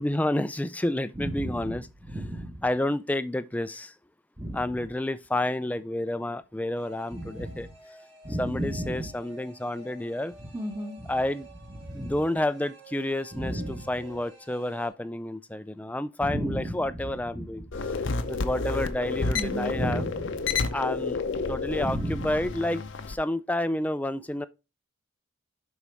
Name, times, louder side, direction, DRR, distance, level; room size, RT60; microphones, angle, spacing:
voice 1, 0.0-1.9 2.6-3.9 4.5-7.7 8.4-10.4 11.1-11.5 11.9-17.7 17.9-20.0 20.7-21.2 21.5-24.5, left 1 dB, 5° left, 0.3 m, -30 dB
voice 2, 1.2-1.8 2.1-2.6 4.4-4.6 7.1-7.7 8.2-9.1 10.4-11.1 11.8-12.1 13.3-13.9 16.2-17.5 19.2-20.7 21.8-22.4, right 1 dB, 15° right, 1.0 m, -34 dB
sound 1, 6.7-14.9, right 2 dB, 65° right, 5.2 m, -50 dB
sound 2, 17.7-23.1, left 4 dB, 65° left, 0.7 m, -30 dB
11.0 x 4.2 x 3.4 m
head